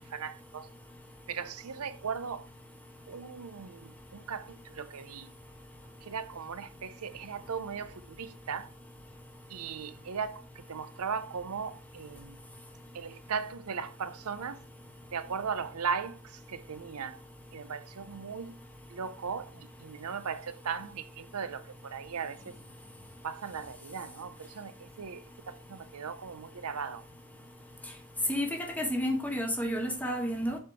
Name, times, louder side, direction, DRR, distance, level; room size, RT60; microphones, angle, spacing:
voice 1, 0.1-0.6 1.3-2.4 3.1-3.7 4.3-4.4 4.8-5.2 6.1-7.9 8.2-8.7 9.5-10.4 10.7-12.2 13.0-14.6 15.1-16.1 16.7-17.2 17.5-18.5 18.9-19.5 19.8-21.6 21.9-22.4 23.2-24.3 24.6-24.7 25.0-25.2 25.7-27.0, right 6 dB, 85° right, 0.6 m, -37 dB
voice 2, 28.3-30.6, equal, 5° left, 1.2 m, -31 dB
7.4 x 4.4 x 4.5 m
head